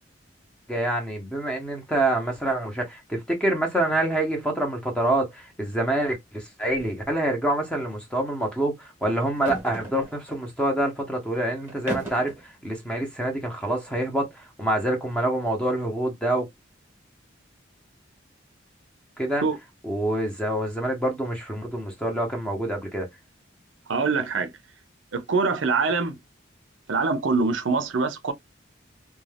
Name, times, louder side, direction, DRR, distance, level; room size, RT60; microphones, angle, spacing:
voice 1, 0.7-16.5 19.2-19.5 19.8-23.1, right 1 dB, 5° left, 0.8 m, -26 dB
sound 1, 6.8-7.0 7.3-7.4 9.3-10.4 11.7-12.4, right 1 dB, 10° right, 1.1 m, -36 dB
voice 2, 23.9-24.5 25.1-26.2 26.9-28.3, right 4 dB, 75° right, 0.6 m, -24 dB
2.5 x 2.3 x 3.2 m
head